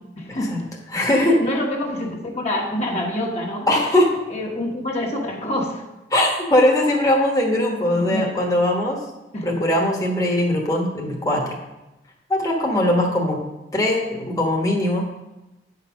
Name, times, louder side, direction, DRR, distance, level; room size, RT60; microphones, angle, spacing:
voice 1, 0.2-0.7 0.9-3.7 4.3-5.8 8.0-8.3 9.3-9.6, left 1 dB, 40° left, 0 dB, 1.3 m, -27 dB
voice 2, 0.9-1.4 3.7-4.1 6.1-9.0 9.4-11.6 12.3-13.4 13.7-15.1, left 1 dB, 20° left, -1 dB, 1.2 m, -20 dB
9.6 x 5.5 x 6.1 m, 1.0 s
head